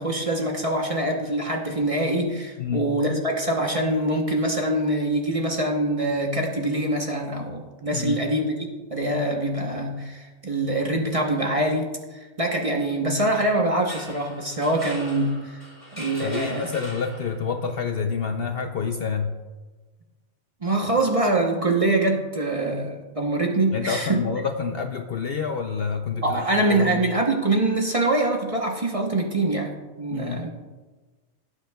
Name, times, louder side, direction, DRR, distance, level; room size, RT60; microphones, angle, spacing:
voice 1, 0.0-15.6 15.9-16.7 20.6-24.2 26.2-30.5, right 1 dB, 30° right, 1 dB, 0.9 m, -24 dB
sound 1, 13.7-17.6, equal, 30° left, 3.7 m, -41 dB
voice 2, 16.2-19.3 23.7-26.4 26.7-27.0 30.1-30.4, left 6 dB, 60° left, 5 dB, 0.7 m, -28 dB
17.0 x 8.2 x 2.3 m, 1.3 s
omnidirectional pair, 1.4 m